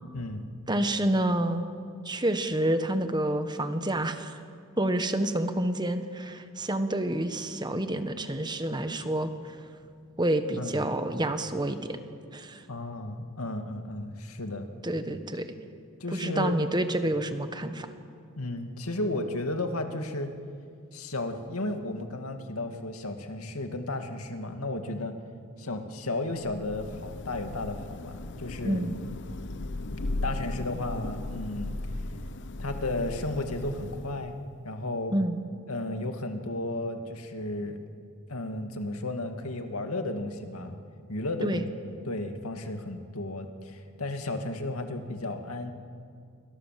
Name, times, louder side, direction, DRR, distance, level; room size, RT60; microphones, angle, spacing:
voice 1, 0.1-0.5 10.6-10.8 12.7-14.7 16.0-16.6 18.4-20.3 20.9-25.1 25.6-28.8 30.2-31.8 32.6-34.4 34.6-35.1 35.7-37.8 38.3-40.8 41.1-41.6 41.9-45.7, left 2 dB, 85° left, 6 dB, 2.2 m, -33 dB
voice 2, 0.7-1.6 2.0-4.4 4.8-9.3 10.2-12.0 12.3-12.6 14.8-15.5 16.1-17.9 28.6-28.9 35.1-35.4 41.4-41.6, right 1 dB, 20° right, 8 dB, 1.4 m, -28 dB
Thunder / Rain, 26.4-34.4, left 2 dB, 55° left, 0.9 m, -37 dB
28.5 x 24.0 x 7.6 m, 2.3 s
head